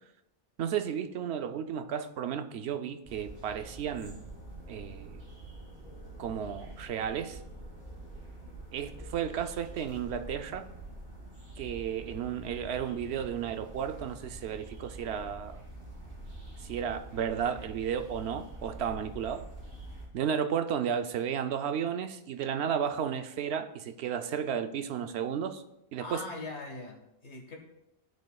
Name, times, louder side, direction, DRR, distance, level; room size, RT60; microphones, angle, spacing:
voice 1, 0.6-4.3 4.7-5.2 6.2-7.4 8.7-10.7 11.6-15.6 16.6-19.5 20.1-25.6 25.9-26.2, right 8 dB, 80° right, 0.9 m, -33 dB
sound 1, 3.0-20.0, right 2 dB, 40° right, 2.7 m, -46 dB
voice 2, 26.0-27.6, left 3 dB, 80° left, 1.7 m, -41 dB
14.0 x 5.2 x 2.3 m
omnidirectional pair, 1.1 m